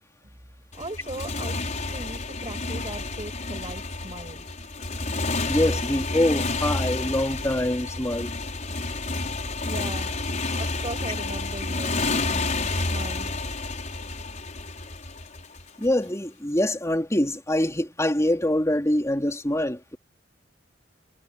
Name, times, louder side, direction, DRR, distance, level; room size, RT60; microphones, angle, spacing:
Motorcycle, 0.7-15.9, left 3 dB, 45° left, 5.7 m, -30 dB
voice 1, 0.7-4.5 9.6-10.1 10.6-13.5, right 2 dB, 30° right, 8.0 m, -39 dB
voice 2, 5.5-8.3 15.8-20.0, left 1 dB, 15° left, 3.5 m, -24 dB
head